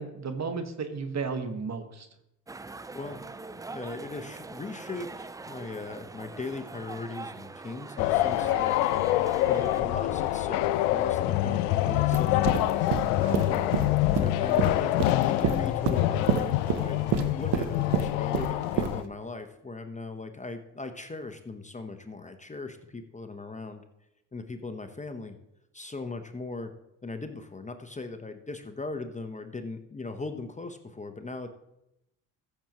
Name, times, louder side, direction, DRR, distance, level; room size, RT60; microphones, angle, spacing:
voice 1, 0.0-2.1, right 4 dB, 40° right, 7 dB, 1.4 m, -33 dB
sound 1, 2.5-9.8, right 3 dB, 10° right, 0.3 m, -42 dB
voice 2, 3.7-8.8 9.5-13.7 14.2-23.8 24.3-25.4 25.7-26.7 27.0-31.5, left 3 dB, 15° left, 7 dB, 1.0 m, -39 dB
sound 2, 8.0-19.0, left 14 dB, 85° left, 0.5 m, -26 dB
sound 3, 12.1-19.0, right 9 dB, 65° right, 0.9 m, -29 dB
15.0 x 7.1 x 3.1 m, 0.85 s
hypercardioid pair, 60°, 42 cm